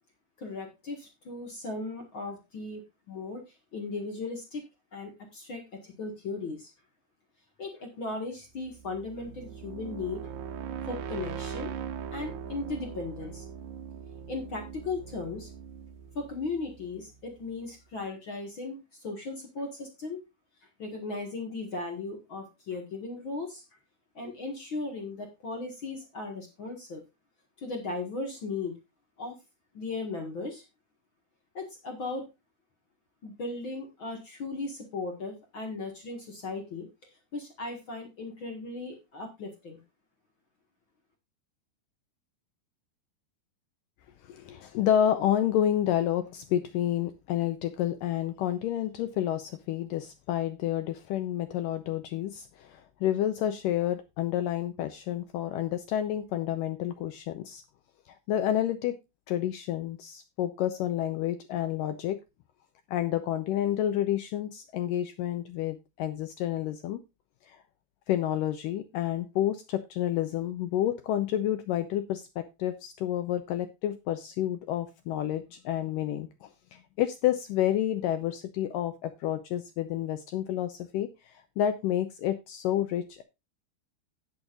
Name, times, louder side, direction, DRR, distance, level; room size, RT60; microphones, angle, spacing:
voice 1, 0.4-2.8 3.1-3.4 3.7-4.6 4.9-6.7 7.6-10.3 10.9-11.7 12.1-13.5 14.3-15.5 16.2-20.2 20.8-23.6 24.2-27.0 27.6-28.7 29.2-29.4 29.7-30.6 31.5-32.3 33.2-36.9 37.3-39.8, left 3 dB, 45° left, 3 dB, 1.6 m, -37 dB
sound 1, 8.6-17.4, right 8 dB, 80° right, 1.7 m, -40 dB
voice 2, 44.2-57.6 58.3-58.9 59.3-62.2 62.9-67.0 67.5-67.6 68.1-83.2, left 11 dB, 85° left, 9 dB, 1.9 m, -29 dB
17.0 x 6.4 x 2.5 m, 0.24 s
omnidirectional pair, 4.7 m